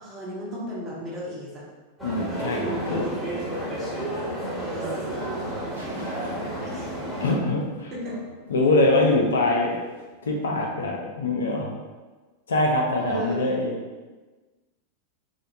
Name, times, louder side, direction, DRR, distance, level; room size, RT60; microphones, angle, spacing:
voice 1, 0.0-1.6 2.5-3.1 4.4-5.7 6.1-6.2 6.6-6.9 7.9-8.2 13.0-13.5, right 1 dB, 25° right, -5 dB, 0.9 m, -35 dB
voice 2, 2.0-3.1 7.2-7.9 8.5-9.7 10.2-11.7 12.5-13.7, left 2 dB, 65° left, 0 dB, 0.4 m, -23 dB
sound 1, 2.0-7.4, right 1 dB, 5° right, 1.1 m, -31 dB
sound 2, 2.6-10.1, right 1 dB, 85° right, 0.8 m, -42 dB
3.4 x 2.2 x 2.6 m, 1.3 s
figure-of-eight pair, 90°, 0 cm